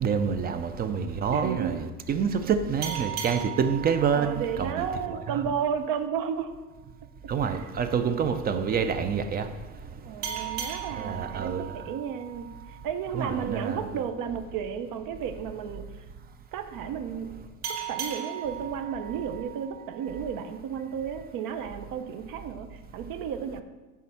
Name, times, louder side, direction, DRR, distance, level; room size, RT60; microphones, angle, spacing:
voice 1, 0.0-4.9 5.3-5.4 7.3-9.5 11.0-11.8 13.1-13.9, right 6 dB, 25° right, 0.4 m, -27 dB
voice 2, 1.3-1.9 4.1-6.5 7.4-7.7 10.0-15.8 16.5-17.3 17.9-23.6, right 7 dB, 50° right, 0.9 m, -33 dB
sound 1, 2.8-6.0 10.2-13.5 17.6-20.6, right 8 dB, 85° right, 1.8 m, -38 dB
8.5 x 3.6 x 5.6 m
supercardioid pair, 100°, 43 cm